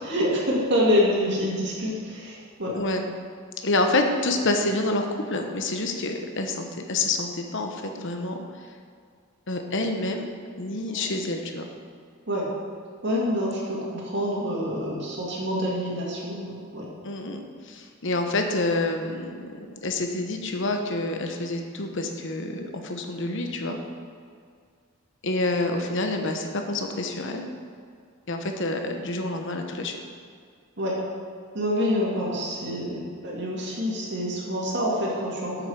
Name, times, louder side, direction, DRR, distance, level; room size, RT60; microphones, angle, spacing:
voice 1, 0.0-2.7 10.9-11.0 12.3-12.5 13.0-16.9 30.8-31.0 31.5-35.7, equal, 50° right, -4 dB, 2.3 m, -26 dB
voice 2, 3.6-8.4 9.5-10.3 10.6-11.6 17.0-23.8 25.2-27.5 28.3-30.0 35.6-35.7, left 2 dB, 55° left, 4 dB, 1.0 m, -28 dB
7.9 x 7.7 x 6.3 m, 2.2 s
head